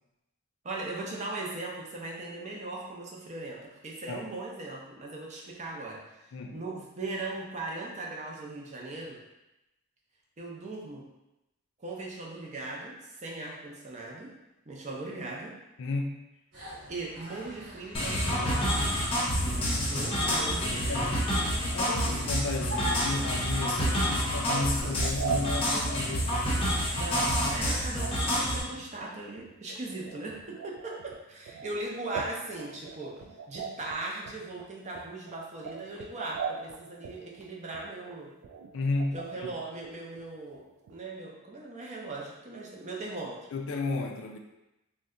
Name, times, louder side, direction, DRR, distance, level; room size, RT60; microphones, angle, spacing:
voice 1, 0.6-9.2 10.4-11.1 11.8-14.3 14.7-15.6 16.9-18.6 19.7-21.1 26.9-38.3 39.1-43.4, right 2 dB, 35° right, -2 dB, 0.5 m, -39 dB
voice 2, 15.8-16.2 20.9-21.1 21.7-26.3 38.7-39.2 43.5-44.4, left 3 dB, 60° left, 3 dB, 0.3 m, -33 dB
sound 1, 16.5-23.8, equal, 55° right, 0.9 m, -43 dB
sound 2, 17.9-28.6, equal, 25° left, 0.7 m, -28 dB
sound 3, 24.2-39.5 39.8-40.2 40.5-40.6 40.8-41.0, right 6 dB, 90° right, 0.3 m, -41 dB
2.7 x 2.2 x 3.6 m, 0.95 s
head